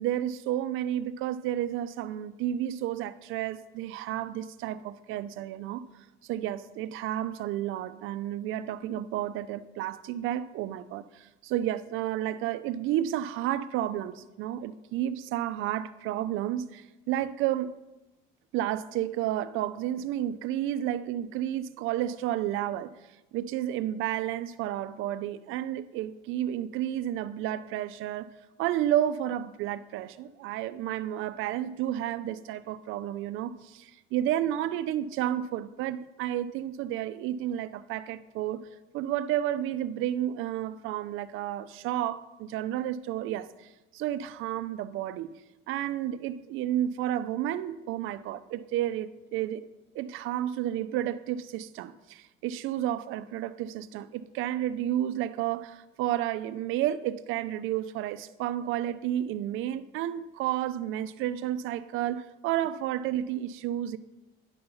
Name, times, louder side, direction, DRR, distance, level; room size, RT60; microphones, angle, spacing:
voice 1, 0.0-5.9 6.3-17.8 18.5-22.9 23.3-28.3 28.6-38.6 38.9-45.3 45.7-49.7 49.9-64.0, right 12 dB, 70° right, 0.7 m, -31 dB
12.5 x 10.0 x 5.5 m
cardioid pair, 160°, 21 cm